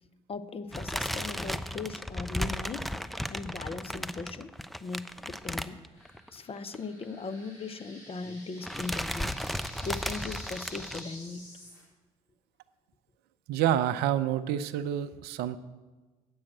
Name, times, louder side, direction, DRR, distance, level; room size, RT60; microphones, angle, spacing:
voice 1, 0.3-2.9 3.3-4.5 4.8-5.8 6.3-9.4 9.8-11.4, left 4 dB, 35° left, 11 dB, 0.7 m, -38 dB
sound 1, 0.7-6.3 6.6-6.8 7.0-7.1 8.1-8.4 8.6-11.0, equal, ahead, 0.5 m, -35 dB
sound 2, 5.9-11.8, left 1 dB, 70° left, 4.0 m, -49 dB
voice 2, 13.5-15.6, right 10 dB, 65° right, 13 dB, 0.5 m, -28 dB
8.5 x 6.4 x 7.8 m, 1.3 s
hypercardioid pair, 55°, 18 cm